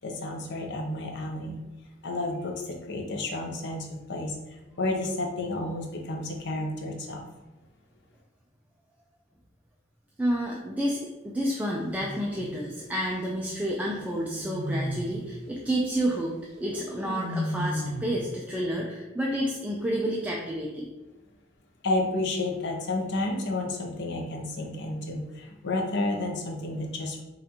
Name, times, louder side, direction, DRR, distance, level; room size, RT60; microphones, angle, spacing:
voice 1, 0.0-1.6 2.0-4.4 4.8-7.2 21.8-27.2, left 2 dB, 60° left, 2 dB, 0.7 m, -31 dB
voice 2, 10.2-20.9, equal, 10° right, -2 dB, 0.4 m, -30 dB
sound 1, 11.7-12.6 13.9-15.2 16.6-18.2, left 1 dB, 60° right, 0.7 m, -34 dB
5.5 x 2.5 x 2.9 m, 1.1 s
head